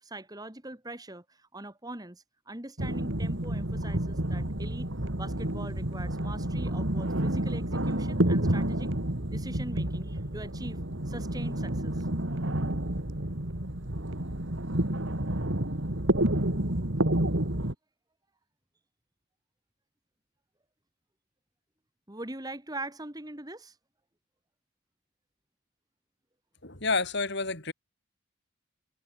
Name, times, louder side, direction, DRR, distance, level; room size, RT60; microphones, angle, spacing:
voice 1, 0.0-4.9 5.2-8.9 9.3-12.1 22.1-23.8, right 1 dB, 15° right, 2.0 m, -42 dB
sound 1, 2.8-17.7, right 1 dB, 60° right, 2.5 m, -29 dB
voice 2, 26.6-27.7, left 3 dB, 55° left, 4.1 m, -29 dB
head